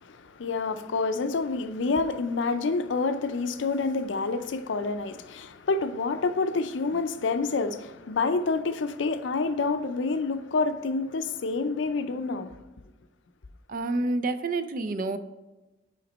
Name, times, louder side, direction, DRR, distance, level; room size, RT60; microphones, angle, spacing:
voice 1, 0.0-12.5, left 3 dB, 75° left, 0.5 m, -28 dB
voice 2, 13.7-15.2, right 2 dB, 45° right, 0.4 m, -28 dB
5.7 x 5.1 x 4.1 m
head